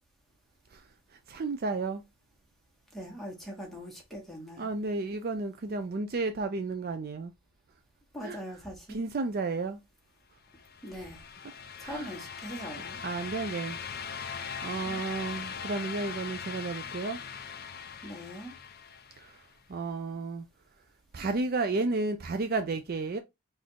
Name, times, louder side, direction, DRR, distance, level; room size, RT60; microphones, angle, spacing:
voice 1, 1.3-2.0 4.6-7.3 8.2-8.4 8.9-9.8 11.8-12.1 13.0-13.8 14.3-17.2 19.2-19.3 19.7-20.5 21.1-23.2, right 3 dB, 45° right, 0.4 m, -32 dB
voice 2, 2.9-4.7 8.1-9.0 10.8-11.2 11.8-13.0 14.8-15.0 18.0-18.5, equal, ahead, 1.4 m, -41 dB
sound 1, 10.5-19.4, left 7 dB, 45° left, 0.5 m, -40 dB
4.1 x 2.6 x 4.6 m
head